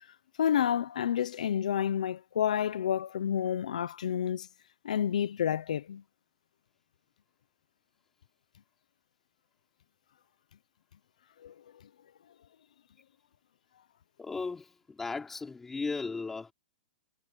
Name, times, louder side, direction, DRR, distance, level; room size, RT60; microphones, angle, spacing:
voice 1, 0.4-4.5 4.8-6.0 11.4-11.5, left 9 dB, 75° left, 0.9 m, -29 dB
voice 2, 14.2-16.5, left 4 dB, 5° left, 3.7 m, -36 dB
supercardioid pair, 175°, 4 cm